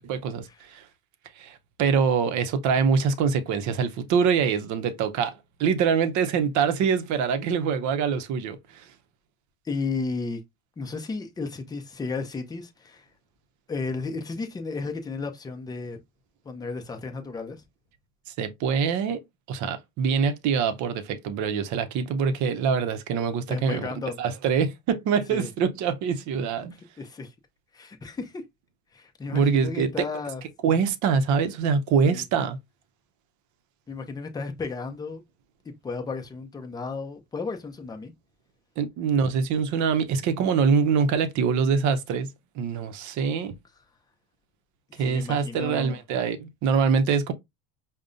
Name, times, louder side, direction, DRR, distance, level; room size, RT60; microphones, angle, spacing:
voice 1, 0.1-0.8 1.4-5.3 5.6-8.8 18.4-19.2 19.5-23.9 24.2-26.7 29.3-29.9 30.6-32.6 38.8-42.3 42.6-43.6 45.0-47.3, right 6 dB, 45° right, 0.7 m, -24 dB
voice 2, 9.6-10.4 10.8-13.0 13.7-16.0 16.4-17.6 23.5-24.2 25.3-25.5 27.0-27.3 27.7-28.4 28.9-30.4 32.0-32.2 33.9-35.2 35.6-38.1 44.9-46.0, left 4 dB, 10° left, 0.5 m, -33 dB
5.2 x 2.1 x 2.5 m
cardioid pair, 145°, 40 cm